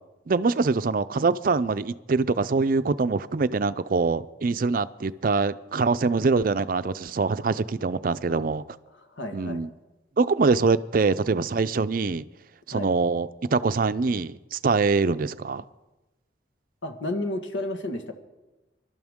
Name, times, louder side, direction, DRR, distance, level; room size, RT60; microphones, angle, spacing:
voice 1, 0.3-8.6 9.3-9.7 10.2-12.2 12.7-15.6, right 4 dB, 50° right, 0.4 m, -24 dB
voice 2, 8.9-9.6 12.7-12.9 16.8-18.1, left 1 dB, 85° left, 1.6 m, -32 dB
24.5 x 12.5 x 3.7 m
head